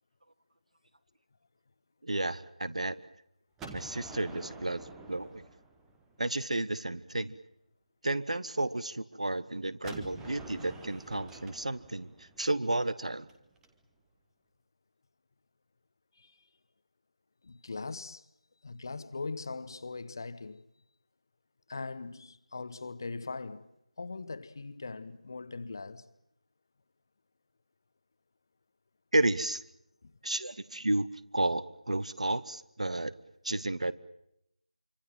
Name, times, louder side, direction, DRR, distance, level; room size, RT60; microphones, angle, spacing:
voice 1, 2.0-2.9 3.7-5.4 6.2-7.3 8.0-13.3 29.1-29.6 30.2-31.1 31.3-33.1 33.4-33.9, right 2 dB, 55° right, 1.4 m, -32 dB
Gunshot gunfire, 3.6-6.4 9.8-13.7, right 3 dB, 5° right, 1.0 m, -48 dB
voice 2, 17.4-18.2 18.6-20.6 21.7-23.7 24.0-26.0, left 3 dB, 30° left, 1.0 m, -40 dB
26.0 x 25.0 x 7.6 m
figure-of-eight pair, 165°, 4 cm